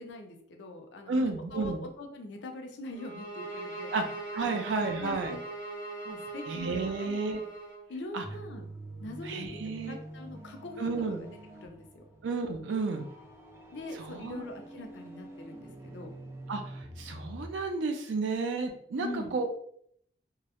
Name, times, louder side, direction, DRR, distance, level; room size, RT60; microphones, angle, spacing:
voice 1, 0.0-3.9 4.3-4.6 5.0-5.4 6.0-7.1 7.9-8.7 9.0-11.3 11.6-12.0 13.7-16.1 19.0-19.3, left 2 dB, 75° left, 4 dB, 0.5 m, -43 dB
voice 2, 1.1-1.8 3.9-4.0 4.3-5.3 6.5-7.4 8.1-8.2 9.2-10.0 10.8-11.2 12.2-13.0 14.0-14.4 16.5-19.5, right 3 dB, 80° right, 4 dB, 0.4 m, -32 dB
sound 1, 2.9-7.8, right 2 dB, 50° left, 0.9 m, -40 dB
sound 2, 8.2-17.5, right 1 dB, 15° right, 0.3 m, -46 dB
2.2 x 2.0 x 2.8 m, 0.66 s
head